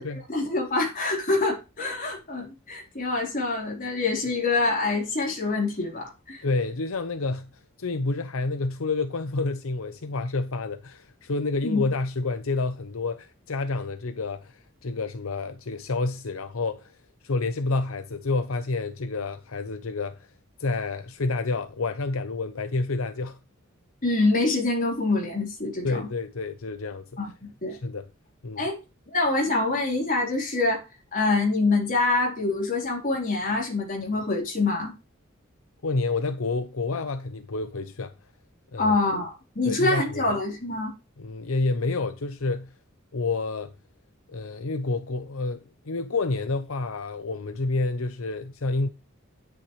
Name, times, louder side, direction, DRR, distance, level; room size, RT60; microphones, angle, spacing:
voice 1, 0.3-6.4 11.6-11.8 24.0-26.0 27.2-27.8 28.6-28.8 29.1-30.8 31.1-34.9 38.8-40.9, left 3 dB, 40° left, 4.2 m, -25 dB
voice 2, 6.4-17.0 17.2-20.3 20.6-23.4 25.8-27.1 27.7-28.1 28.4-28.7 35.8-38.1 38.7-39.0 39.6-40.2 41.2-42.7 43.1-43.7 44.3-48.9, left 3 dB, 75° left, 0.8 m, -29 dB
10.5 x 9.2 x 3.3 m
head